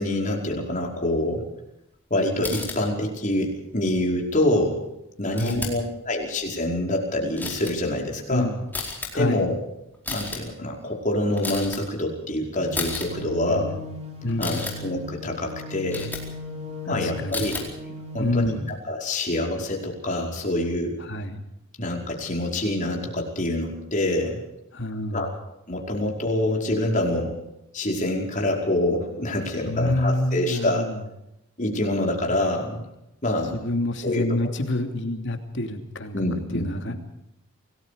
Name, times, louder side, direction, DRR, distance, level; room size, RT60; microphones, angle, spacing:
voice 1, 0.0-1.5 2.1-4.8 5.2-8.5 9.1-9.6 10.1-13.7 14.4-16.1 16.9-17.7 18.1-21.0 21.8-24.4 25.1-25.3 25.7-27.4 27.7-30.9 31.6-32.8 33.2-33.7 34.0-34.5 36.1-37.0, left 1 dB, 35° left, 0 dB, 5.1 m, -26 dB
sound 1, 2.4-2.8 5.3-5.8 6.2-6.6 7.4-7.7 8.7-9.1 9.9-10.4 11.4-11.8 12.7-13.1 14.3-14.7 15.9-16.2 17.2-17.7 18.7-18.8, left 3 dB, 10° left, 4.6 m, -32 dB
voice 2, 5.3-5.7 8.3-8.7 9.1-9.4 13.5-13.8 14.2-14.7 16.9-17.5 18.2-18.7 21.0-21.4 24.7-25.3 29.7-31.0 33.5-36.2 36.5-37.0, left 1 dB, 55° left, 5 dB, 2.9 m, -27 dB
sound 2, 12.6-18.6, left 2 dB, 30° right, 6.4 m, -38 dB
28.0 x 19.0 x 5.2 m, 0.85 s
head